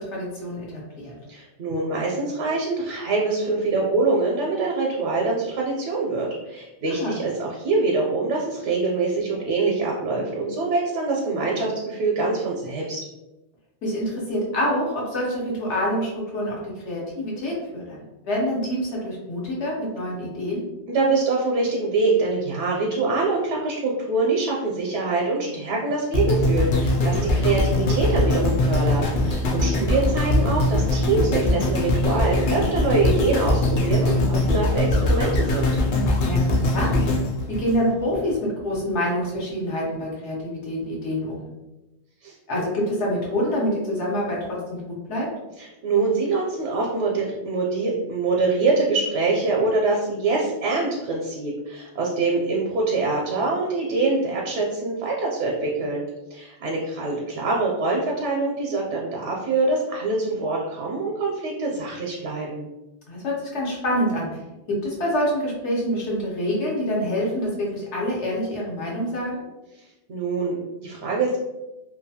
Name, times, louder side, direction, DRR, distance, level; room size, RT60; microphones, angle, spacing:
voice 1, 0.0-1.1 6.9-7.1 13.8-16.6 16.8-20.7 29.4-29.8 36.2-36.4 36.7-37.0 37.5-41.5 42.5-44.4 44.7-45.3 63.1-64.4 64.7-69.5, equal, 80° left, -4 dB, 1.2 m, -26 dB
voice 2, 1.3-13.0 20.9-35.7 42.2-42.3 45.6-56.0 56.3-62.6 70.1-71.4, right 3 dB, 85° right, -2 dB, 0.9 m, -24 dB
sound 1, 26.1-38.3 38.9-39.0, left 1 dB, 60° left, 0.6 m, -22 dB
2.7 x 2.2 x 2.7 m, 1.0 s
omnidirectional pair, 1.2 m